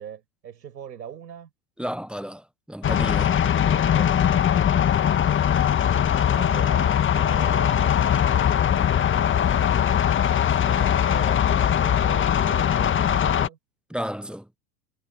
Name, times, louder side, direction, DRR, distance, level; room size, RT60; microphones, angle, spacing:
voice 1, 0.0-1.5 3.6-4.6 6.3-8.8 10.6-13.6, right 8 dB, 90° right, 6.5 m, -41 dB
voice 2, 1.8-3.4 13.9-14.5, equal, ahead, 1.0 m, -32 dB
sound 1, 2.8-13.5, left 9 dB, 25° left, 1.7 m, -21 dB
hypercardioid pair, 105°, 50 cm